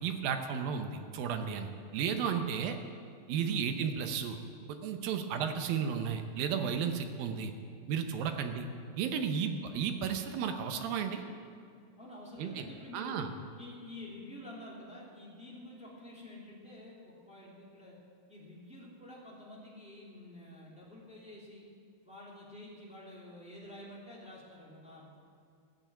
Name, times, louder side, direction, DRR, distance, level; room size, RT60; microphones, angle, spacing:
voice 1, 0.0-2.8 3.3-4.4 4.7-7.5 7.9-8.7 9.0-11.2 12.4-12.7 12.9-13.3, right 7 dB, 75° right, 6 dB, 2.5 m, -33 dB
voice 2, 12.0-13.2 13.6-18.0 18.3-21.7 22.0-25.2, left 1 dB, ahead, -6 dB, 2.3 m, -49 dB
14.0 x 6.9 x 8.9 m, 2.3 s
omnidirectional pair, 4.4 m